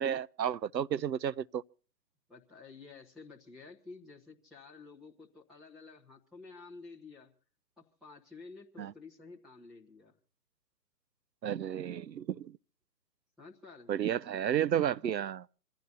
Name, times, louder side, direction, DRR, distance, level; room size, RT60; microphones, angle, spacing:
voice 1, 0.0-1.6 8.8-8.9 11.4-12.6 13.9-15.5, right 9 dB, 80° right, 0.8 m, -32 dB
voice 2, 2.3-7.3 7.8-10.1 13.4-14.0, left 4 dB, ahead, 1.2 m, -51 dB
27.0 x 15.5 x 2.7 m
hypercardioid pair, 165°, 50 cm